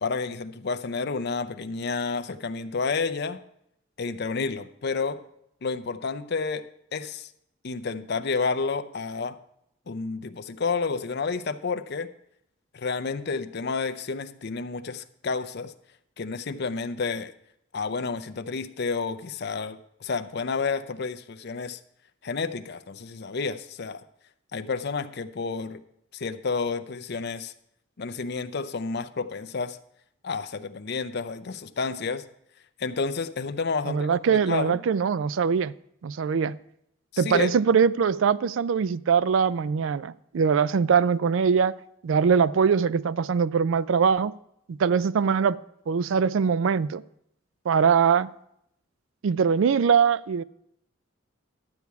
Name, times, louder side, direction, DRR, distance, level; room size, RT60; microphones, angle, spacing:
voice 1, 0.0-3.4 4.0-5.2 5.6-7.3 7.6-9.4 9.9-12.1 12.7-15.7 16.2-17.3 17.7-21.8 22.2-24.0 24.5-25.8 26.1-27.5 28.0-29.8 30.2-32.3 32.8-34.8 37.1-37.5, left 4 dB, 55° left, 0.6 m, -30 dB
voice 2, 33.9-35.7 36.0-36.6 37.2-41.8 42.0-44.3 44.7-45.6 45.9-47.0 47.7-48.3 49.2-50.4, right 6 dB, 70° right, 0.4 m, -22 dB
12.0 x 8.3 x 4.6 m
head